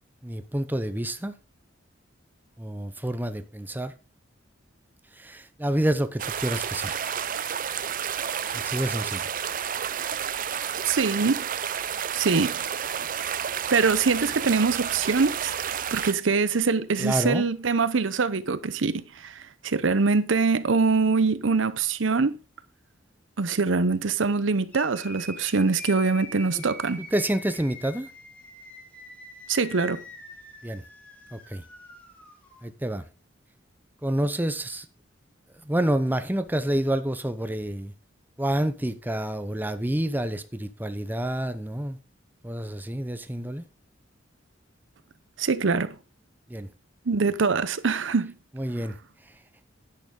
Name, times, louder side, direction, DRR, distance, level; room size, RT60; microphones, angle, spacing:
voice 1, 0.2-1.3 2.6-3.9 5.2-7.0 8.5-9.3 17.0-17.5 26.6-26.7 27.1-28.1 30.6-30.8 31.3-31.6 32.6-33.0 34.0-34.9 35.6-37.9 38.4-42.0 42.4-43.6 46.5-46.7 48.6-48.9, right 1 dB, 10° right, 0.8 m, -28 dB
sound 1, 6.2-16.1, right 8 dB, 45° right, 0.6 m, -30 dB
voice 2, 10.9-11.4 12.1-12.6 13.0-13.1 13.7-15.5 15.9-22.4 23.4-27.0 29.5-30.0 45.4-46.0 47.1-48.3, right 4 dB, 75° right, 0.7 m, -24 dB
sound 2, 24.7-32.6, left 2 dB, 5° left, 2.6 m, -44 dB
10.5 x 8.8 x 3.7 m
head